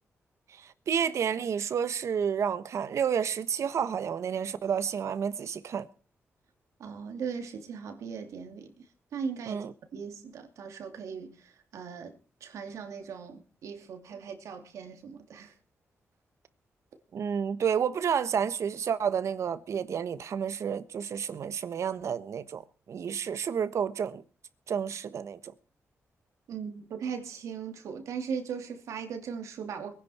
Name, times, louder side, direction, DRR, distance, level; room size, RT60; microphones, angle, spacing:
voice 1, 0.5-5.9 9.5-9.7 17.1-22.6 22.9-24.2 24.7-25.5, right 7 dB, 70° right, 1.2 m, -30 dB
voice 2, 6.8-8.9 9.1-9.6 9.9-15.5 26.5-29.9, right 6 dB, 90° right, 2.8 m, -38 dB
22.5 x 10.5 x 4.4 m
cardioid pair, 90°, 5 cm